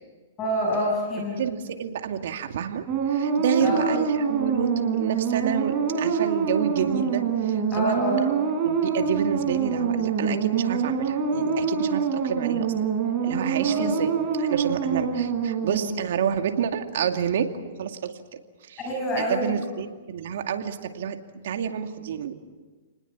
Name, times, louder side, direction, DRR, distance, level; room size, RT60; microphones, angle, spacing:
voice 1, 0.4-1.4 3.6-3.9 7.7-8.2 13.6-13.9 18.8-19.5, equal, 25° left, 0 dB, 6.5 m, -26 dB
voice 2, 1.4-8.0 8.6-12.9 13.2-14.1 14.4-17.5 17.8-18.1 18.6-18.8 19.2-21.2 21.4-22.3, right 8 dB, 70° right, 6 dB, 2.4 m, -29 dB
sound 1, 2.9-16.2, right 6 dB, 30° right, 4.4 m, -25 dB
29.5 x 20.0 x 7.3 m, 1.4 s
hypercardioid pair, 140°, 0 cm